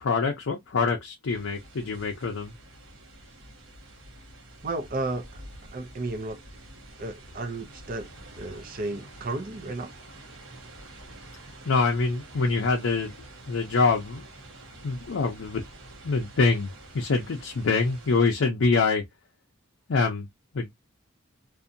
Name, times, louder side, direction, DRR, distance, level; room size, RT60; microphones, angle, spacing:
voice 1, 0.0-2.5 11.6-13.1 13.5-14.2 14.8-15.6 16.0-19.0 19.9-20.3 20.5-20.7, left 4 dB, 70° left, 0.5 m, -25 dB
sound 1, 1.3-18.2, right 1 dB, 70° right, 0.8 m, -47 dB
voice 2, 4.6-5.4 5.7-6.4 7.0-8.1 8.3-9.9, right 2 dB, 40° right, 0.5 m, -33 dB
2.6 x 2.2 x 2.5 m
head